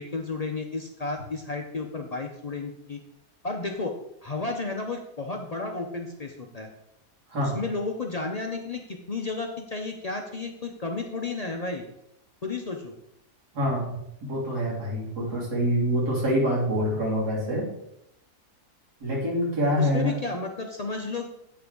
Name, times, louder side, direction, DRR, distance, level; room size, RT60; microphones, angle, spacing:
voice 1, 0.0-3.0 3.4-3.9 4.2-6.7 7.4-11.8 12.4-12.9 19.6-21.3, left 3 dB, 65° left, 3 dB, 0.4 m, -32 dB
voice 2, 13.5-17.7 19.0-20.1, equal, 80° right, -4 dB, 3.1 m, -26 dB
8.7 x 5.9 x 3.8 m, 0.80 s
omnidirectional pair, 1.7 m